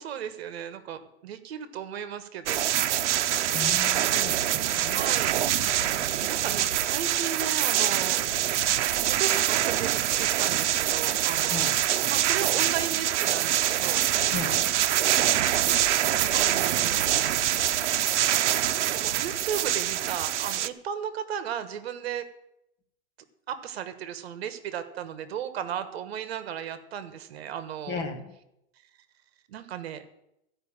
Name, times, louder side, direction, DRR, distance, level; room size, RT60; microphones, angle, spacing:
voice 1, 0.0-2.6 4.9-5.4 6.2-11.7 12.1-14.0 16.3-17.1 18.8-22.3 23.5-28.0 29.5-30.0, right 8 dB, 60° right, 11 dB, 1.3 m, -35 dB
sound 1, 2.5-20.7, right 12 dB, 85° right, 0.7 m, -25 dB
voice 2, 3.5-5.0 5.8-6.2 11.5-11.8 14.3-14.7 27.9-28.3, left 5 dB, 30° left, 5 dB, 1.5 m, -36 dB
14.5 x 5.5 x 8.8 m, 0.84 s
supercardioid pair, 170°, 35 cm